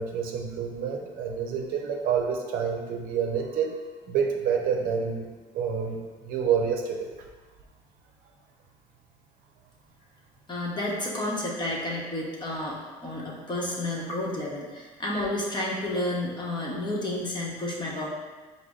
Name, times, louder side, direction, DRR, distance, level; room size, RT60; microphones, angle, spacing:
voice 1, 0.0-3.7 4.1-5.3 5.5-7.1, right 7 dB, 70° right, 2 dB, 0.6 m, -28 dB
voice 2, 10.5-18.1, left 1 dB, 30° left, -3 dB, 1.0 m, -31 dB
4.9 x 2.1 x 3.6 m, 1.3 s
supercardioid pair, 85°, 15 cm